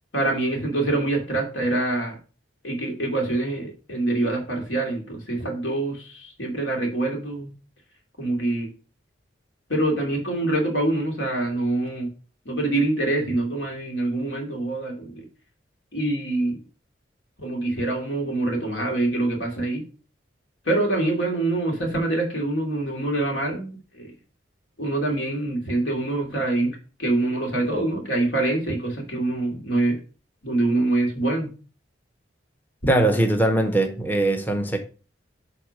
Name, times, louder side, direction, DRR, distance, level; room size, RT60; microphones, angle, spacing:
voice 1, 0.1-2.1 2.6-7.5 8.2-8.7 9.7-12.1 12.5-15.3 15.9-16.6 17.4-19.8 20.7-24.1 24.8-30.0 30.4-31.5, right 2 dB, 80° left, 2.5 m, -25 dB
voice 2, 32.9-34.8, right 1 dB, 10° left, 0.7 m, -21 dB
8.1 x 3.6 x 5.2 m
head